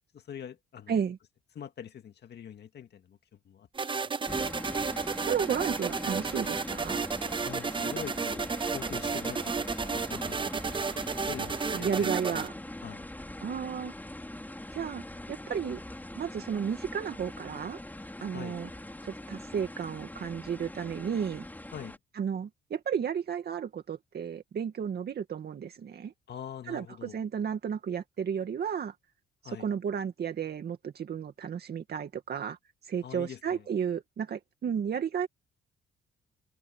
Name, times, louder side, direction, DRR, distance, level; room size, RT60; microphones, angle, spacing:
voice 1, 0.1-0.9 1.6-3.2 3.4-4.0 7.4-10.7 11.3-12.4 12.8-13.0 18.3-18.6 21.7-22.0 26.3-27.2 29.4-29.7 33.0-33.7, left 9 dB, 60° left, 2.1 m, -44 dB
voice 2, 0.9-1.2 5.3-7.0 11.7-12.5 13.4-13.9 14.7-15.0 15.3-15.8 16.1-17.8 18.2-18.7 19.0-21.4 22.2-26.1 26.7-28.9 29.4-32.6 32.8-35.3, right 7 dB, 55° right, 2.2 m, -33 dB
sound 1, 3.8-12.5, right 5 dB, 25° right, 0.7 m, -32 dB
sound 2, 4.3-22.0, left 1 dB, 10° left, 5.4 m, -42 dB
cardioid pair, 90°, 20 cm